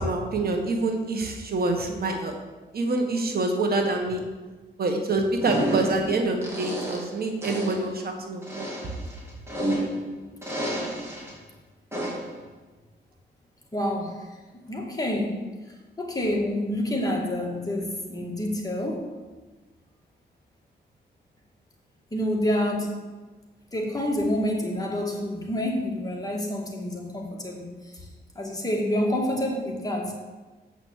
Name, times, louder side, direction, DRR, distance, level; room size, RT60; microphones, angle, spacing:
voice 1, 0.0-2.3 2.7-4.2 4.8-8.7, right 2 dB, 55° right, 3 dB, 1.6 m, -26 dB
sound 1, 5.4-6.1 6.4-7.1 7.4-7.9 8.4-10.1 10.4-11.3 11.9-12.3, right 1 dB, 15° right, 3.3 m, -30 dB
voice 2, 13.7-14.4 14.7-15.4 16.0-19.1 22.1-23.0 23.7-28.1 28.4-30.1, left 1 dB, 20° left, -1 dB, 2.0 m, -28 dB
8.0 x 6.2 x 7.3 m, 1.2 s
cardioid pair, 100°, 18 cm